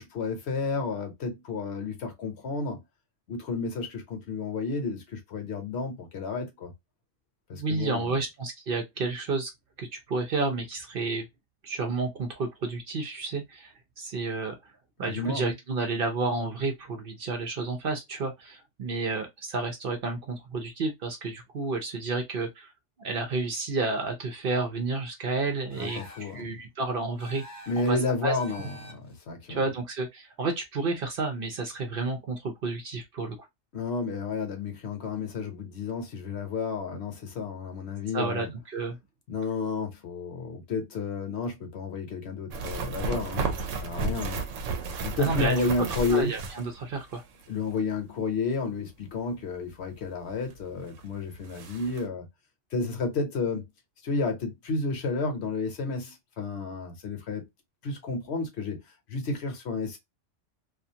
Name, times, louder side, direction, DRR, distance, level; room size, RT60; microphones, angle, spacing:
voice 1, 0.0-2.8 3.3-6.7 7.5-8.2 15.0-15.5 25.7-26.5 27.7-29.6 33.7-38.5 39.3-44.4 45.0-46.3 47.5-52.2 52.7-53.6 54.0-57.4 57.8-58.8 59.1-60.0, left 4 dB, 60° left, 1.0 m, -31 dB
voice 2, 7.5-9.5 9.8-11.3 11.6-14.7 15.0-22.7 23.0-27.4 27.8-28.0 28.2-28.4 29.5-33.4 38.1-39.0 45.2-45.6 46.1-47.2, right 3 dB, 55° right, 0.7 m, -31 dB
sound 1, 25.7-26.4 27.2-27.9 28.4-29.2, left 1 dB, 25° left, 0.4 m, -46 dB
sound 2, 42.5-47.2 47.4-47.5 50.5-50.6 51.0-51.1 51.4-52.0, right 4 dB, 90° right, 1.0 m, -33 dB
2.4 x 2.4 x 2.7 m
omnidirectional pair, 1.3 m